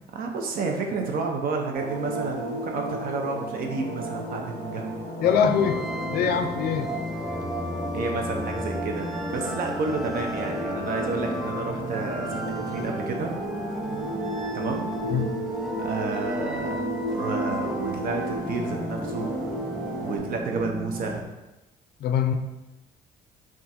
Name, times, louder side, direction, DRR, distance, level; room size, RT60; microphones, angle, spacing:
voice 1, 0.1-5.0 6.2-6.8 7.9-13.3 14.5-14.9 15.8-16.8 17.1-19.3 20.0-21.3, right 4 dB, 60° right, 2 dB, 0.7 m, -30 dB
sound 1, 1.7-20.2, right 1 dB, 85° right, 1.2 m, -34 dB
voice 2, 5.2-5.8 6.1-6.9 15.1-15.3 22.0-22.4, left 7 dB, 65° left, 7 dB, 0.4 m, -23 dB
sound 2, 5.2-21.2, equal, ahead, 0.3 m, -33 dB
3.6 x 2.5 x 4.2 m, 1.0 s
cardioid pair, 110°, 17 cm